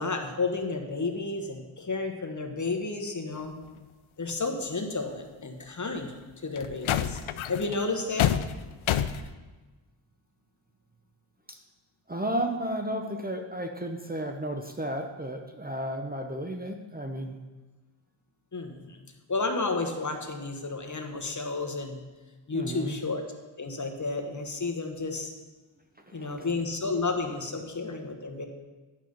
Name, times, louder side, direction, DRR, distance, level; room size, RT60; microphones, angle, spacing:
voice 1, 0.0-3.5 4.2-6.2 6.4-7.2 7.5-8.4 18.5-19.0 19.3-22.0 22.5-23.2 23.6-25.3 26.1-28.5, left 3 dB, 40° left, 4 dB, 1.3 m, -31 dB
sound 1, 4.3-4.4 5.9-6.1 6.6-9.3, left 10 dB, 85° left, 0.6 m, -28 dB
voice 2, 12.1-17.4 22.5-23.0 26.1-26.5, right 1 dB, 20° right, 4 dB, 0.7 m, -33 dB
10.5 x 5.5 x 6.5 m, 1.2 s
wide cardioid pair, 95°, 47 cm